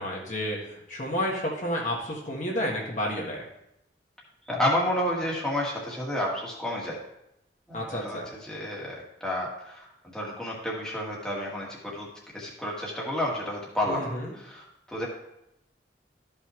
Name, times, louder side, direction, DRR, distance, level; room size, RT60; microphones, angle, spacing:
voice 1, 0.0-3.4 7.7-8.3 13.9-14.3, equal, 40° left, -2 dB, 1.6 m, -31 dB
voice 2, 4.5-7.0 7.7-12.1 12.3-15.1, left 1 dB, 5° left, -5 dB, 1.8 m, -31 dB
13.0 x 5.6 x 3.1 m, 0.82 s
head